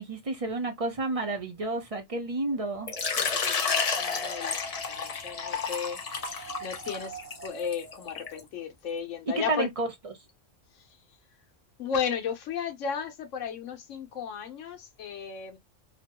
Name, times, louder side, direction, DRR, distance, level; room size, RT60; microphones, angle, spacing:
voice 1, 0.0-2.9 9.4-10.1, right 2 dB, 35° right, 0.6 m, -31 dB
Wind, 2.4-8.4, right 2 dB, 75° right, 1.2 m, -46 dB
Water / Liquid, 2.9-8.4, left 5 dB, 40° left, 0.5 m, -31 dB
voice 2, 3.2-9.7 10.7-10.9 11.8-15.6, left 7 dB, 80° left, 1.1 m, -35 dB
2.9 x 2.1 x 2.8 m
omnidirectional pair, 1.3 m